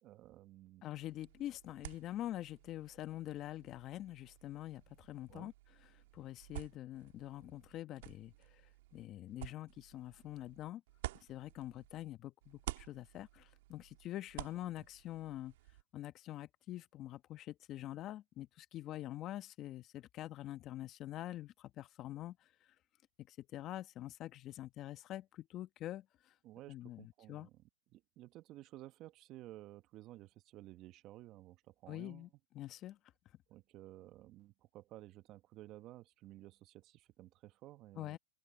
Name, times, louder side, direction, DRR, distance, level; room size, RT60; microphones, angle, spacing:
voice 1, 0.0-0.9 5.3-5.5 14.8-14.9 26.4-27.6 27.9-32.3 33.5-38.2, right 15 dB, 30° right, 1.0 m, -54 dB
voice 2, 0.8-5.5 5.9-8.6 8.9-10.8 11.3-15.5 15.9-22.5 23.3-26.3 26.7-27.5 31.9-33.0 37.9-38.2, left 14 dB, 25° left, 1.4 m, -45 dB
sound 1, 0.9-12.1 12.4-15.8, right 17 dB, 55° right, 1.9 m, -51 dB
open air
hypercardioid pair, 140°, 0 cm